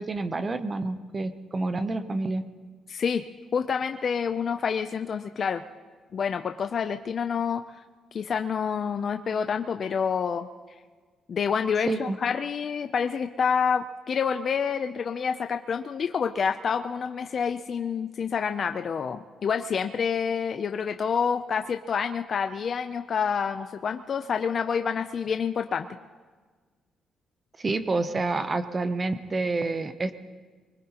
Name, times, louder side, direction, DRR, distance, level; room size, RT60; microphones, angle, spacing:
voice 1, 0.0-2.4 11.9-12.2 27.6-30.1, right 3 dB, 20° right, 10 dB, 0.7 m, -28 dB
voice 2, 2.9-3.2 3.5-5.6 6.1-7.8 8.1-10.5 11.3-25.9, left 6 dB, 35° left, 7 dB, 0.4 m, -28 dB
24.5 x 20.5 x 2.9 m, 1.5 s
cardioid pair, 170°, 0 cm